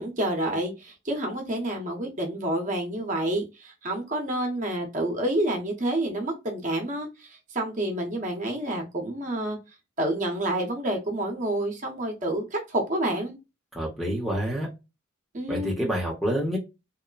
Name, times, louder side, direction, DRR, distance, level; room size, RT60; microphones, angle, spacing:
voice 1, 0.0-9.6 10.0-13.4 15.3-15.7, right 1 dB, 35° right, 0.7 m, -29 dB
voice 2, 13.7-14.7 15.5-16.6, equal, ahead, 0.7 m, -27 dB
2.9 x 2.1 x 2.3 m
head